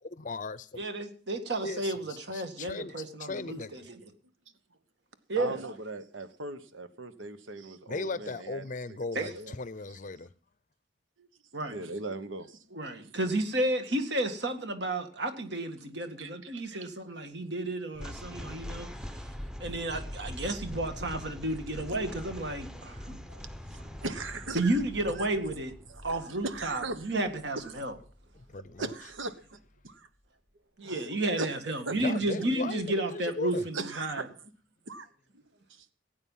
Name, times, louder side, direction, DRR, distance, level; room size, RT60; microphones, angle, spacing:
voice 1, 0.2-0.8 1.6-3.8 7.9-10.3 28.5-28.9 32.0-33.6, left 3 dB, 40° left, 0.6 m, -37 dB
voice 2, 0.8-4.0 5.3-5.6 9.2-9.3 11.5-11.8 12.7-18.9 19.6-23.2 24.5-25.7 26.0-28.0 30.8-34.3, right 1 dB, 60° right, 1.9 m, -32 dB
voice 3, 5.4-9.5 11.2-11.3 11.7-12.9 16.2-16.9 23.3-23.4 23.7-24.8 25.1-25.2 25.9-27.2 28.5-29.6 29.8-30.1 30.8-31.1 31.4-31.5 31.8-31.9 33.7-34.3 34.9-35.1 35.3-35.4 35.7-35.9, right 3 dB, 85° right, 1.2 m, -39 dB
sound 1, 17.9-29.2, equal, 5° right, 0.7 m, -43 dB
17.0 x 8.9 x 5.6 m
head